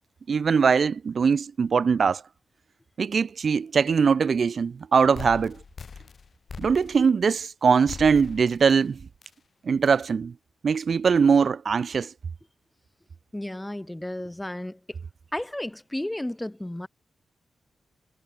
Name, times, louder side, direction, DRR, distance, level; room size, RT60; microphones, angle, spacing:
voice 1, 0.3-2.2 3.0-5.6 6.6-9.0 9.6-10.3 10.6-12.1, right 6 dB, 55° right, 4.1 m, -21 dB
sound 1, 5.1-7.2 7.9-8.8 9.2-9.3 9.8-10.1, left 5 dB, 50° left, 3.8 m, -41 dB
voice 2, 13.3-15.0 15.3-16.9, left 1 dB, 10° left, 3.1 m, -33 dB
wide cardioid pair, 105°, 0 cm